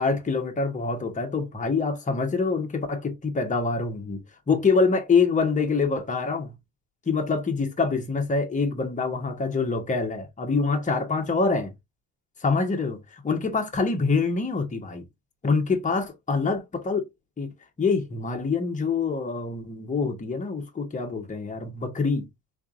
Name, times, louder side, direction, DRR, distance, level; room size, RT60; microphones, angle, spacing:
voice 1, 0.0-6.5 7.1-11.7 12.4-15.1 15.4-17.1 17.4-17.5 17.8-22.3, left 4 dB, 15° left, 1.0 m, -25 dB
4.0 x 3.3 x 2.5 m
cardioid pair, 140°, 43 cm